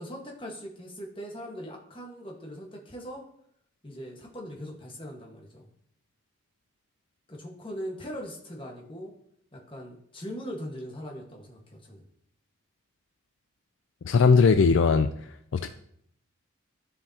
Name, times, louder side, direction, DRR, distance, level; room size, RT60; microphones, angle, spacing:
voice 1, 0.0-3.2 3.8-5.7 7.3-9.1 9.5-12.1, equal, 25° left, 0 dB, 1.4 m, -40 dB
voice 2, 14.0-15.1 15.5-15.7, left 5 dB, 60° left, 8 dB, 0.3 m, -19 dB
13.5 x 4.9 x 2.8 m, 0.71 s
head